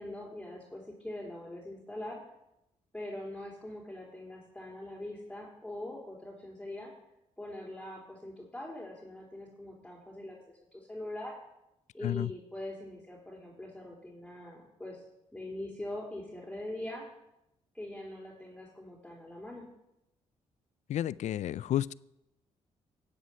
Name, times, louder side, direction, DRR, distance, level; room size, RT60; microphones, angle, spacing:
voice 1, 0.0-2.2 2.9-6.9 7.4-10.4 10.7-11.4 11.9-15.0 15.3-17.0 17.7-19.6, left 1 dB, 5° left, -5 dB, 3.6 m, -42 dB
voice 2, 20.9-21.9, left 12 dB, 65° left, 20 dB, 0.4 m, -31 dB
13.5 x 8.2 x 5.6 m, 0.85 s
supercardioid pair, 65°, 13 cm